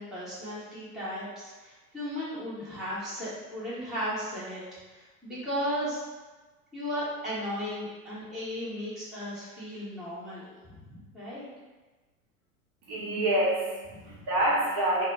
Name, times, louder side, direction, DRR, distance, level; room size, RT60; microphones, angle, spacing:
voice 1, 0.0-6.0 6.7-10.5 10.8-11.5 14.0-14.1, equal, ahead, -12 dB, 0.8 m, -35 dB
voice 2, 12.8-15.1, right 1 dB, 45° right, -6 dB, 0.9 m, -27 dB
2.1 x 2.1 x 3.3 m, 1.2 s
figure-of-eight pair, 90°, 45 cm